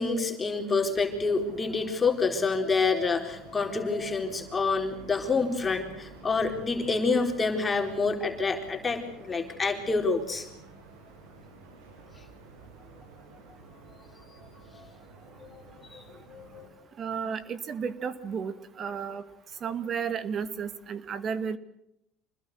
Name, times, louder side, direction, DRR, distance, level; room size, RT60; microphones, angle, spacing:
voice 1, 0.0-10.5 14.7-14.9 15.4-15.6 15.9-16.7, left 4 dB, 20° left, 3 dB, 4.1 m, -28 dB
sound 1, 0.9-16.7, right 3 dB, 85° right, 7.4 m, -50 dB
voice 2, 17.0-19.2 19.6-21.6, right 6 dB, 40° right, 12 dB, 2.2 m, -33 dB
26.5 x 20.5 x 8.0 m, 0.79 s
supercardioid pair, 95°, 0 cm